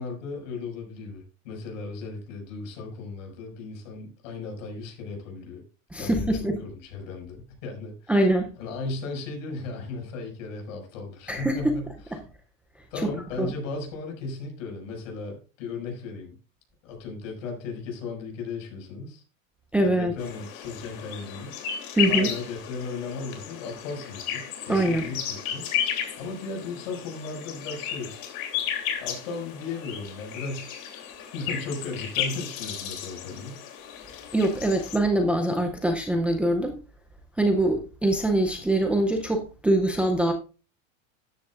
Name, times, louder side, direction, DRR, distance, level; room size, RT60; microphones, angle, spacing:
voice 1, 0.0-5.6 6.0-8.2 8.6-12.2 12.9-16.4 16.8-19.2 19.8-21.6 22.0-25.6 26.2-28.2 29.0-30.8 31.3-33.6, left 3 dB, 65° left, 5.9 m, -36 dB
voice 2, 5.9-6.6 8.1-8.5 11.3-11.6 12.1-12.2 13.0-13.1 13.4-13.5 19.7-20.1 22.0-22.3 24.7-25.0 34.3-36.8 37.4-40.3, right 1 dB, 5° right, 0.5 m, -23 dB
sound 1, 20.2-35.0, left 9 dB, 45° left, 2.9 m, -33 dB
13.5 x 9.9 x 2.5 m
supercardioid pair, 160°, 41 cm